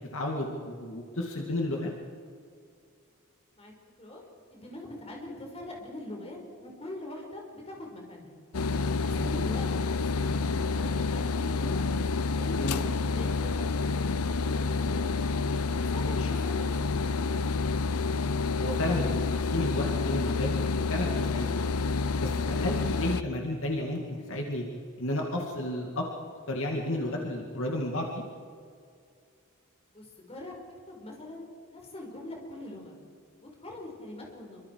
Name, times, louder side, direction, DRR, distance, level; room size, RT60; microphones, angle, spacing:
voice 1, 0.1-1.9 9.0-9.3 12.5-12.8 16.0-16.3 18.6-19.2 19.5-20.5 20.9-21.6 22.2-24.6 25.0-26.0 26.5-28.2, left 1 dB, 65° left, 0 dB, 2.5 m, -32 dB
voice 2, 4.5-8.4 9.0-11.8 12.4-13.8 14.1-15.1 15.7-17.0 29.9-30.5 30.9-33.0 33.4-34.6, left 1 dB, 30° left, 0 dB, 5.2 m, -43 dB
sound 1, 8.5-23.2, left 4 dB, 90° left, 0.8 m, -28 dB
27.0 x 25.0 x 4.8 m, 2.3 s
head